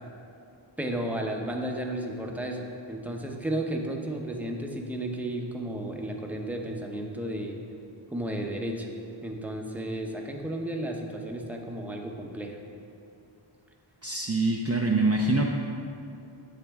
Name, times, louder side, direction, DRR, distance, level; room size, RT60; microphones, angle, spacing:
voice 1, 0.8-7.5 8.1-8.9 9.2-12.6, right 1 dB, 5° right, 1 dB, 0.7 m, -33 dB
voice 2, 14.0-15.5, right 2 dB, 35° right, 0 dB, 0.5 m, -24 dB
8.3 x 6.5 x 3.5 m, 2.6 s
wide cardioid pair, 65°, 47 cm